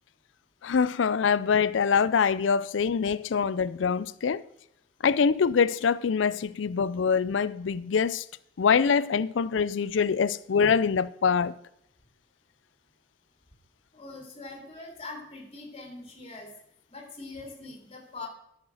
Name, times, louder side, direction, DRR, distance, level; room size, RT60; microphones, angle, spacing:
voice 1, 0.6-4.4 5.0-8.2 8.6-11.5, left 6 dB, 85° left, 0.4 m, -24 dB
voice 2, 13.9-16.5 16.9-18.3, left 3 dB, 30° left, 3.1 m, -42 dB
11.5 x 6.7 x 6.3 m
head